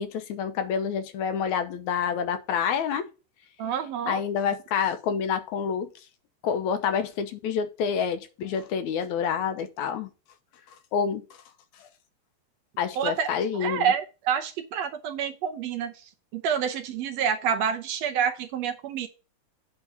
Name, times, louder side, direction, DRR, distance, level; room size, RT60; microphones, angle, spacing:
voice 1, 0.0-3.0 4.1-5.9 6.4-10.1 10.9-11.2 12.8-13.9, left 7 dB, 80° left, 2.3 m, -28 dB
voice 2, 3.6-4.2 12.9-15.9 16.3-19.1, right 7 dB, 70° right, 1.8 m, -28 dB
9.1 x 3.9 x 7.2 m
omnidirectional pair, 3.4 m